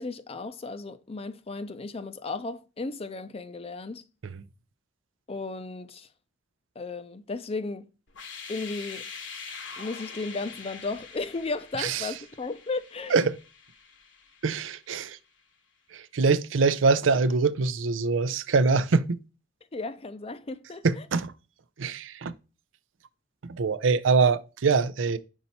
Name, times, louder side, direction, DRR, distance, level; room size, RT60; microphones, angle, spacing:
voice 1, 0.0-4.0 5.3-6.1 6.8-7.9 8.5-9.1 9.8-13.2 19.7-21.0, left 3 dB, 30° left, 0.5 m, -35 dB
sound 1, 8.1-14.9, left 5 dB, 70° left, 1.1 m, -44 dB
voice 2, 11.8-12.1 13.1-13.4 14.4-15.2 15.9-19.2 20.8-21.3 21.8-22.3 23.4-25.2, right 4 dB, 80° right, 0.5 m, -24 dB
5.5 x 4.4 x 4.1 m
head